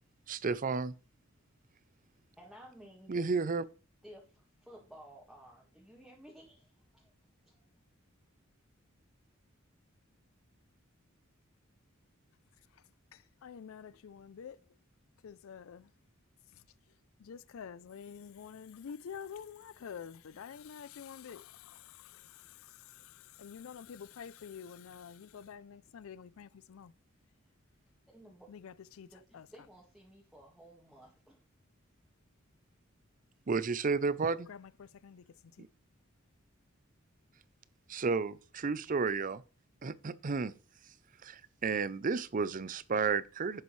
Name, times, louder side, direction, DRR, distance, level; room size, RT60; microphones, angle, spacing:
voice 1, 0.3-0.9 3.1-3.6 33.5-34.5 37.9-39.4 39.8-40.5 41.2-43.6, right 4 dB, 40° right, 0.5 m, -32 dB
voice 2, 2.4-3.3 4.0-7.1 7.5-7.6 28.1-28.5 29.1-31.4, equal, ahead, 1.7 m, -55 dB
voice 3, 13.1-14.6 15.2-15.9 16.5-16.6 17.2-26.9 28.5-29.5 34.5-35.7, left 7 dB, 80° left, 0.4 m, -48 dB
11.0 x 8.2 x 3.2 m
head